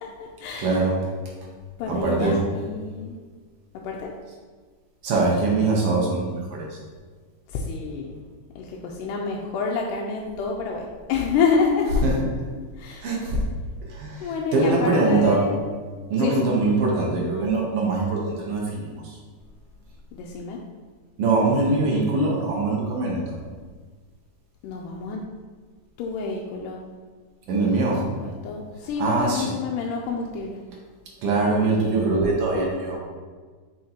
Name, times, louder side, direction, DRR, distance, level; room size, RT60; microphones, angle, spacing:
voice 1, 0.0-0.8 1.8-3.2 3.8-4.1 7.5-8.2 8.6-12.0 12.8-13.1 14.2-15.6 16.2-16.5 20.1-20.6 24.6-25.3 26.0-26.8 27.9-28.0 28.2-30.6, left 5 dB, 90° left, -1 dB, 2.2 m, -28 dB
voice 2, 0.6-1.0 1.9-2.4 5.0-6.8 12.0-12.1 13.0-13.4 13.8-15.4 16.1-19.2 21.2-23.3 27.5-28.0 29.0-29.5 31.2-33.0, right 3 dB, 65° right, -2 dB, 1.5 m, -22 dB
6.3 x 5.2 x 2.9 m, 1.5 s
omnidirectional pair, 3.7 m